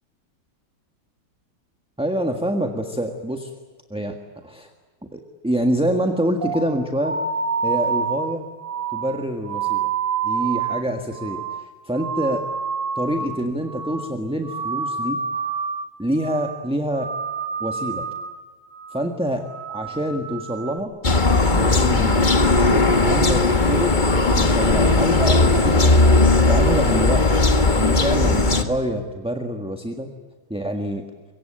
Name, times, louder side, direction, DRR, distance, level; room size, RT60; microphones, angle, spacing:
voice 1, 2.0-3.5 3.9-4.7 5.1-7.2 7.6-8.5 8.9-9.9 10.2-12.5 12.9-15.2 16.0-17.1 17.6-18.1 18.9-20.9 21.5-22.2 22.7-24.0 24.3-27.3 27.7-30.1 30.5-31.0, right 1 dB, 5° right, 4 dB, 1.4 m, -26 dB
sound 1, 6.4-13.4 13.7-14.2 14.4-15.9 16.2-16.6 16.9-18.4 18.7-19.1 19.4-20.8, right 5 dB, 40° right, 1.8 m, -28 dB
sound 2, 21.0-28.6, left 2 dB, 25° left, 1.7 m, -17 dB
25.5 x 23.0 x 9.0 m, 1.4 s
omnidirectional pair, 2.2 m